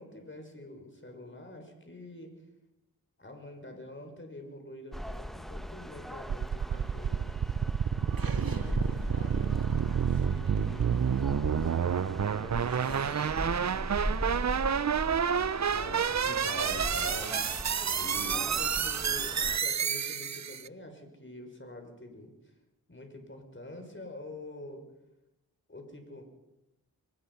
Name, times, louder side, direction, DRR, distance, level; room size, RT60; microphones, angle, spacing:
voice 1, 0.0-2.4 3.2-7.3 8.2-9.7 10.0-11.0 11.4-13.7 18.3-22.5 22.9-24.9 25.7-26.2, left 1 dB, 35° left, 4 dB, 6.2 m, -47 dB
sound 1, 4.9-19.6, equal, ahead, 1.0 m, -39 dB
sound 2, 6.3-20.7, right 7 dB, 50° right, 0.6 m, -29 dB
sound 3, 6.5-14.3, right 4 dB, 75° right, 2.0 m, -47 dB
voice 2, 15.7-17.4 18.0-18.6, equal, 70° left, 3 dB, 4.0 m, -41 dB
23.5 x 20.0 x 5.7 m, 0.92 s
cardioid pair, 45°, 35 cm